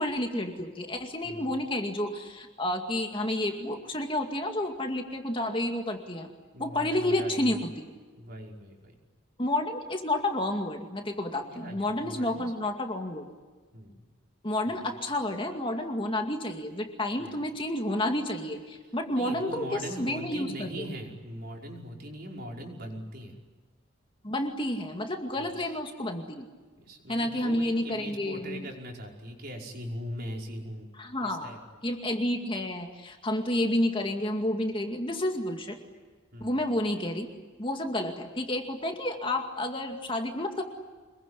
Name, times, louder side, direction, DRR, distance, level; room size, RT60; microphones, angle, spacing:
voice 1, 0.0-6.3 6.6-7.7 9.4-13.3 14.4-20.9 24.2-26.5 27.1-28.6 31.0-31.5 31.8-35.8 36.4-37.3 37.6-40.6, left 1 dB, 25° left, 3 dB, 2.2 m, -30 dB
voice 2, 6.5-7.6 8.2-8.9 11.4-12.5 13.7-14.0 14.7-15.0 17.2-17.5 19.1-23.4 25.3-25.8 26.8-30.9 31.2-31.8 36.3-36.6, equal, 45° right, 0 dB, 5.4 m, -41 dB
26.5 x 22.0 x 9.9 m, 1.4 s
head